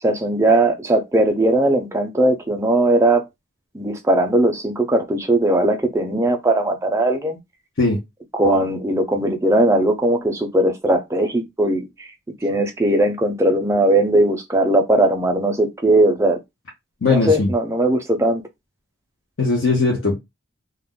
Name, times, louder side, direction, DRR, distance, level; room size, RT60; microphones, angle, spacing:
voice 1, 0.0-3.2 3.7-7.4 8.3-12.1 12.4-16.4 17.1-18.4, right 1 dB, 15° right, 0.4 m, -18 dB
voice 2, 17.0-17.5 19.4-20.2, left 3 dB, 65° left, 0.7 m, -18 dB
2.4 x 2.0 x 3.6 m
head